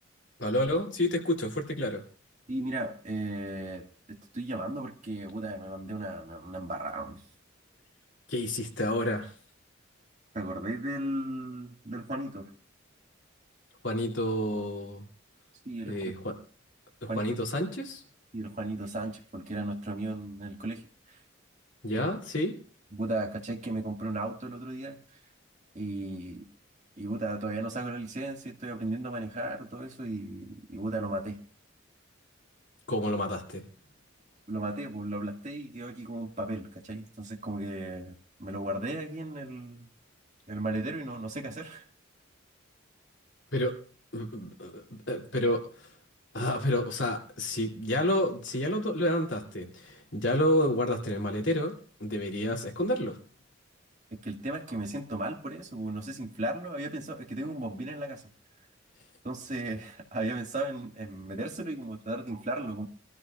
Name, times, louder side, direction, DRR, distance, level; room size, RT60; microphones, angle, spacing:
voice 1, 0.4-2.0 8.3-9.3 13.8-15.0 15.9-16.4 17.0-18.0 21.8-22.5 32.9-33.7 43.5-43.8 44.1-45.9 46.3-51.7 52.0-53.2, left 1 dB, 65° left, 1 dB, 2.7 m, -29 dB
voice 2, 2.5-7.2 10.3-12.5 15.7-16.0 17.1-17.3 18.3-21.2 21.9-22.1 22.9-25.0 25.7-26.5 27.0-31.4 34.5-39.9 40.5-41.8 54.2-58.2 59.2-62.9, right 2 dB, 35° right, 2 dB, 2.0 m, -35 dB
25.0 x 13.5 x 2.4 m, 0.42 s
head